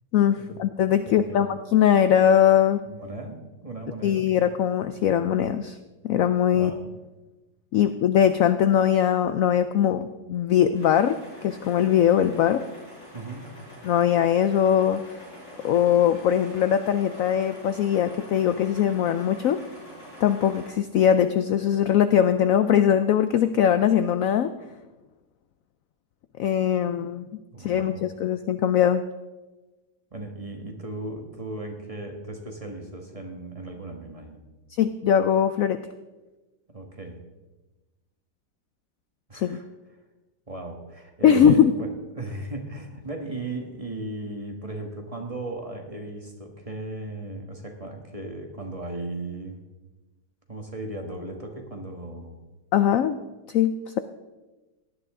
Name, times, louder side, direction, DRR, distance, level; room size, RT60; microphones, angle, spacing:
voice 1, 0.1-2.8 4.0-5.8 6.0-6.7 7.7-12.6 13.8-15.0 15.6-19.6 20.2-24.5 26.4-27.3 27.6-29.0 34.8-35.8 39.3-39.6 41.2-41.7 52.7-53.2 53.5-54.0, left 9 dB, 80° left, 11 dB, 0.7 m, -21 dB
voice 2, 1.1-1.4 2.9-4.4 6.5-6.9 13.1-13.5 26.5-27.0 27.5-28.1 30.1-34.4 36.7-37.2 39.3-39.6 40.5-49.6 50.5-52.3, right 2 dB, 20° right, 2 dB, 1.4 m, -37 dB
sound 1, 10.7-20.7, equal, 30° left, 5.1 m, -45 dB
17.5 x 11.0 x 3.7 m, 1.2 s
omnidirectional pair, 2.0 m